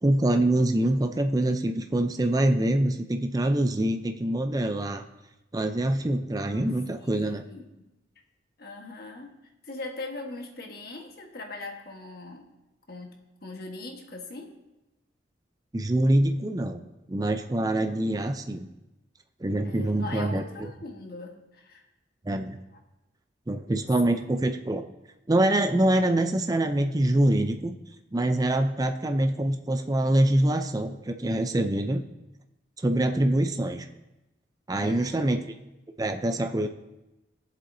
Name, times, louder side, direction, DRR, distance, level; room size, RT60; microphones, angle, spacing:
voice 1, 0.0-5.0 5.5-7.4 15.7-16.8 17.1-18.7 19.4-20.4 22.3-22.6 23.5-24.8 25.3-27.7 28.1-32.0 32.8-33.8 34.7-35.4 36.0-36.7, right 1 dB, 20° right, 6 dB, 0.4 m, -25 dB
voice 2, 6.5-7.8 8.6-9.3 9.6-12.5 12.9-14.5 19.6-21.8 34.8-35.3, left 2 dB, 55° left, 2 dB, 1.4 m, -41 dB
18.5 x 7.6 x 2.7 m, 0.99 s
head